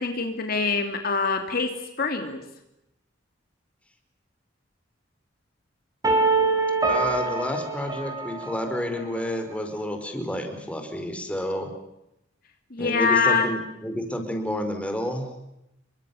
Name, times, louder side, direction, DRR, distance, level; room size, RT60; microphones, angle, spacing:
voice 1, 0.0-1.7 2.0-2.4 12.7-13.5, left 4 dB, 50° left, 5 dB, 2.7 m, -24 dB
sound 1, 6.0-9.0, right 3 dB, 20° right, 5.3 m, -24 dB
voice 2, 6.9-11.7 12.8-15.3, equal, 5° left, 5 dB, 5.0 m, -30 dB
29.5 x 24.0 x 7.1 m, 0.85 s
head